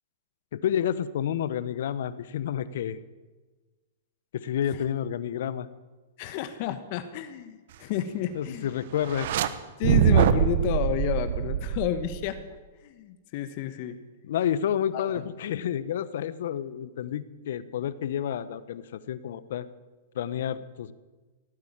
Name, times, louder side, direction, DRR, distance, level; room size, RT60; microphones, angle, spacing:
voice 1, 0.5-3.0 4.3-5.7 8.3-9.3 14.3-19.7 20.1-20.9, left 9 dB, 70° left, 15 dB, 0.9 m, -30 dB
voice 2, 6.2-8.7 9.8-12.4 12.8-14.0 14.9-15.3, left 11 dB, 50° left, 10 dB, 1.3 m, -31 dB
sound 1, 9.0-9.5 9.8-12.4, right 9 dB, 65° right, 1.1 m, -23 dB
17.5 x 9.1 x 8.9 m, 1.3 s
hypercardioid pair, 120°, 0 cm